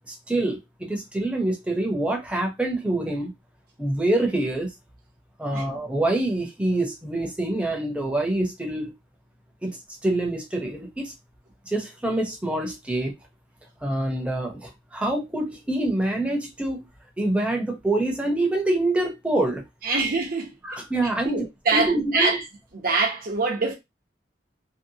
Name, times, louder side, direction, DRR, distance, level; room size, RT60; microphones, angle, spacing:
voice 1, 0.1-3.3 3.8-4.7 5.4-8.9 9.6-9.7 10.0-11.1 11.7-13.1 13.8-16.9 17.2-19.6 20.6-21.5 21.7-22.4, right 1 dB, 5° right, 0.7 m, -26 dB
voice 2, 19.8-20.8 21.2-22.4 22.7-23.7, right 3 dB, 55° right, 0.9 m, -25 dB
2.7 x 2.2 x 2.7 m
head